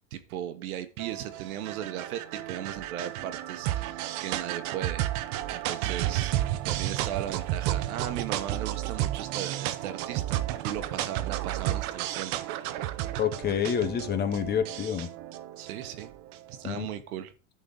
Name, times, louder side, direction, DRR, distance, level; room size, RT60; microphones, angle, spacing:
voice 1, 0.1-5.0 5.5-12.3 12.6-12.8 15.6-16.1 16.5-17.3, right 10 dB, 85° right, 10 dB, 1.5 m, -37 dB
sound 1, 1.0-16.5, right 13 dB, 45° right, 0.8 m, -32 dB
voice 2, 13.2-15.1 16.6-16.9, left 8 dB, 25° left, 10 dB, 0.9 m, -28 dB
11.0 x 4.5 x 5.5 m, 0.34 s
supercardioid pair, 150°, 42 cm